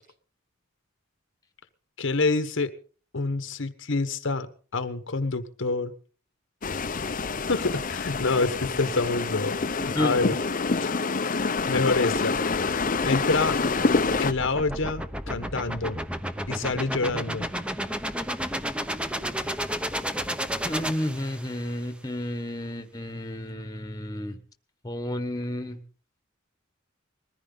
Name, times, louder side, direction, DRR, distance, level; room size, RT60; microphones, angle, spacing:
voice 1, 2.0-2.7 3.1-5.9 7.5-10.4 10.8-11.0 11.7-12.4 13.0-13.6 14.2-16.0 16.5-17.5, left 3 dB, 65° left, 10 dB, 1.2 m, -27 dB
sound 1, 6.6-14.3, left 4 dB, 40° left, 0.7 m, -27 dB
voice 2, 9.8-10.4 20.6-24.4 24.8-25.8, left 1 dB, 20° left, 8 dB, 1.3 m, -31 dB
sound 2, 11.4-21.7, equal, 5° right, 0.9 m, -33 dB
21.0 x 14.5 x 3.9 m, 0.40 s
head